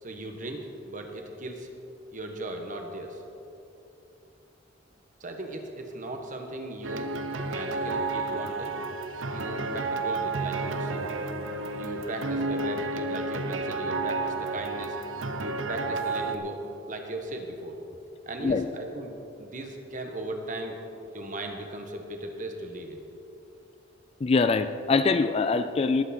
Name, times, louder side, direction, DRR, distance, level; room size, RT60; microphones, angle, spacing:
voice 1, 0.0-1.7 2.1-3.2 5.2-7.1 7.4-8.8 9.3-11.0 11.8-15.0 15.4-17.7 18.3-19.1 19.4-20.8 21.1-23.0, right 1 dB, 40° right, 3 dB, 1.3 m, -37 dB
sound 1, 6.8-16.4, right 3 dB, 80° right, 0.8 m, -31 dB
voice 2, 18.4-18.8 24.2-26.0, left 4 dB, 30° left, 11 dB, 0.3 m, -24 dB
19.0 x 8.0 x 4.3 m, 2.9 s
head